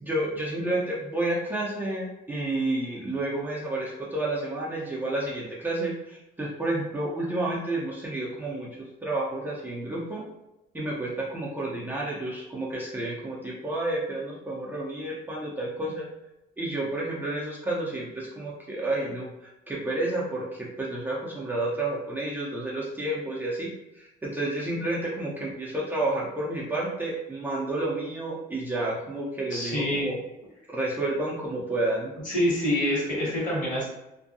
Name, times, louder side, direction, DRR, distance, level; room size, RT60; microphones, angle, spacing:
voice 1, 0.0-10.2 10.7-16.1 16.6-30.2 30.7-32.1, right 2 dB, 10° right, -6 dB, 0.5 m, -30 dB
voice 2, 29.5-30.1 32.2-33.8, left 1 dB, 50° left, -5 dB, 1.4 m, -26 dB
2.6 x 2.2 x 2.6 m, 0.92 s
cardioid pair, 110°, 17 cm